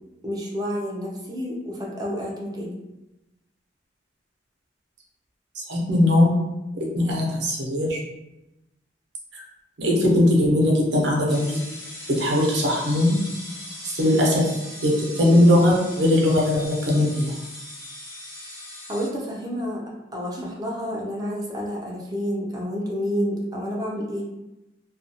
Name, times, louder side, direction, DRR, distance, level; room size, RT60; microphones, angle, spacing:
voice 1, 0.2-2.8 18.9-19.8 20.1-24.2, equal, 20° right, -3 dB, 0.5 m, -29 dB
voice 2, 5.7-6.4 6.8-8.0 9.8-11.6 12.1-13.1 13.9-14.4 14.8-17.3, left 1 dB, 70° right, -3 dB, 0.7 m, -20 dB
sound 1, 11.3-19.1, left 1 dB, 85° left, 1.0 m, -39 dB
2.4 x 2.2 x 2.6 m, 0.97 s
head